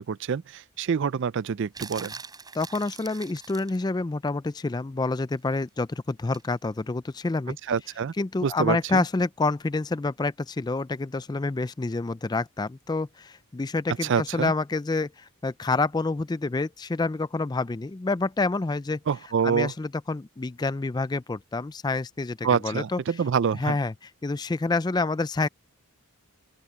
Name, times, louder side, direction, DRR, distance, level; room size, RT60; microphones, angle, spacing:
voice 1, 0.0-2.1 7.7-8.1 8.4-9.0 14.0-14.5 19.1-19.7 22.4-23.8, right 6 dB, 55° right, 0.4 m, -26 dB
sound 1, 1.7-3.8 6.3-6.5, right 4 dB, 20° right, 6.9 m, -42 dB
voice 2, 2.5-7.6 8.2-19.0 19.4-23.0 23.6-23.9 24.2-25.5, left 3 dB, 20° left, 0.3 m, -28 dB
open air
head